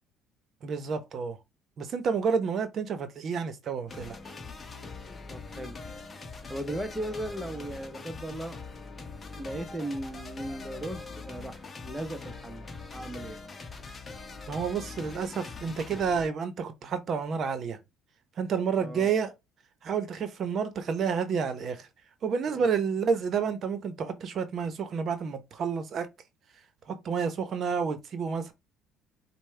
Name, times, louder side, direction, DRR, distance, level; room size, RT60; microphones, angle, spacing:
voice 1, 0.6-1.4 1.8-4.2 14.5-17.8 18.4-19.3 19.8-21.9 22.2-26.1 26.9-28.5, right 6 dB, 50° right, 0.8 m, -30 dB
sound 1, 3.9-16.3, left 4 dB, 25° left, 1.1 m, -42 dB
voice 2, 5.3-5.8 6.5-8.6 9.4-13.4 18.8-19.1 22.5-22.6, right 1 dB, 10° right, 0.9 m, -37 dB
5.4 x 2.2 x 3.3 m
supercardioid pair, 85°, 0 cm